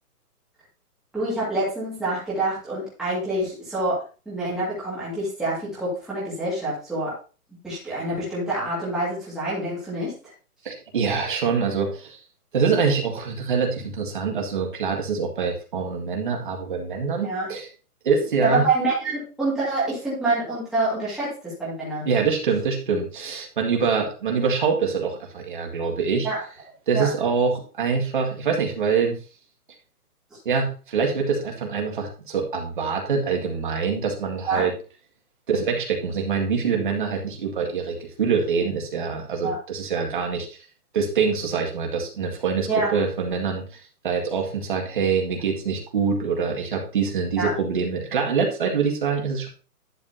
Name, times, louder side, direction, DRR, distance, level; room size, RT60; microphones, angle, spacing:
voice 1, 1.1-7.1 7.6-10.3 17.2-17.5 18.4-22.1 26.2-26.4 26.9-27.1 34.5-34.6 39.4-39.6 42.7-43.0 47.4-47.5, right 2 dB, ahead, -10 dB, 2.0 m, -26 dB
voice 2, 10.6-12.2 12.5-17.7 18.0-18.7 22.1-26.3 26.9-29.2 30.5-34.7 35.5-40.5 40.9-49.5, right 5 dB, 35° right, 1 dB, 2.0 m, -25 dB
11.0 x 7.0 x 2.8 m, 0.36 s
hypercardioid pair, 175°, 46 cm